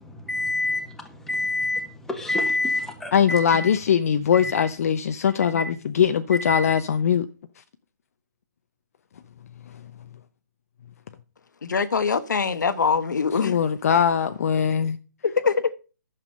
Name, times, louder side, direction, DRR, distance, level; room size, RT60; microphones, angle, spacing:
voice 1, 0.3-0.8 1.3-1.8 2.1-3.6 5.6-5.7 6.5-6.7, left 2 dB, 5° left, 1.6 m, -26 dB
voice 2, 3.1-7.3 13.4-15.0, left 8 dB, 50° left, 0.8 m, -21 dB
voice 3, 11.6-13.6 15.2-15.7, left 5 dB, 70° left, 1.0 m, -23 dB
11.5 x 7.2 x 5.3 m
figure-of-eight pair, 140°, 10 cm